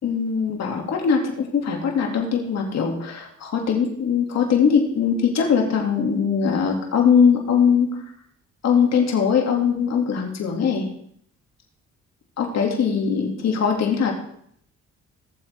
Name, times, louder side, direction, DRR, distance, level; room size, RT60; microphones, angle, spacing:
voice 1, 0.0-7.9 8.6-10.9 12.4-14.1, left 6 dB, 60° left, 1 dB, 2.5 m, -21 dB
17.0 x 7.4 x 3.6 m, 0.67 s
cardioid pair, 90°, 30 cm